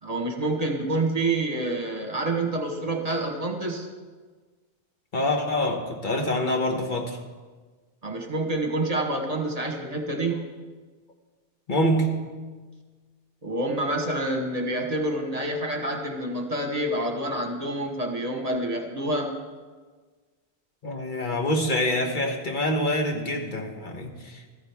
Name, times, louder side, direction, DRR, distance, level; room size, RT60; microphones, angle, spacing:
voice 1, 0.0-3.9 8.0-10.4 13.4-19.3, right 2 dB, 40° right, 3 dB, 1.2 m, -27 dB
voice 2, 5.1-7.2 11.7-12.3 20.8-24.6, left 1 dB, 55° left, 2 dB, 1.4 m, -26 dB
14.5 x 13.5 x 3.5 m, 1.4 s
omnidirectional pair, 1.0 m